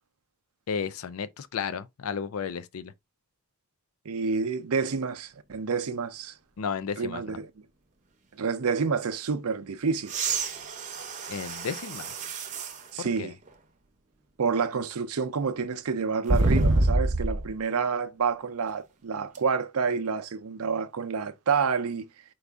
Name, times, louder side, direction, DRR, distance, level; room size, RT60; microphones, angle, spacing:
voice 1, 0.7-2.9 6.6-7.4 11.3-12.1 13.0-13.3, left 6 dB, 70° left, 0.4 m, -33 dB
voice 2, 4.1-6.4 7.0-7.5 8.4-10.2 12.9-13.3 14.4-22.1, right 5 dB, 80° right, 0.5 m, -28 dB
sound 1, 10.0-12.8 13.5-13.6 16.3-17.5 19.3-19.4, right 2 dB, 35° right, 0.7 m, -26 dB
4.7 x 2.5 x 3.4 m
head